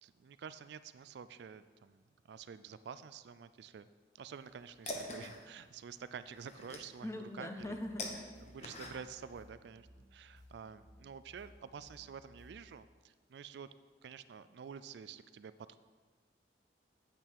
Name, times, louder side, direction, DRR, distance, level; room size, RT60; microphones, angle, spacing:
voice 1, 0.0-3.9 4.2-7.8 8.4-13.7 14.0-15.8, right 6 dB, 65° right, 14 dB, 0.3 m, -49 dB
sound 1, 4.3-9.3, left 2 dB, 35° left, 1.1 m, -46 dB
voice 2, 7.0-8.3, left 1 dB, 15° left, 5 dB, 0.6 m, -42 dB
sound 2, 7.6-12.6, left 1 dB, 45° right, 1.2 m, -61 dB
8.9 x 8.4 x 4.6 m, 1.4 s
head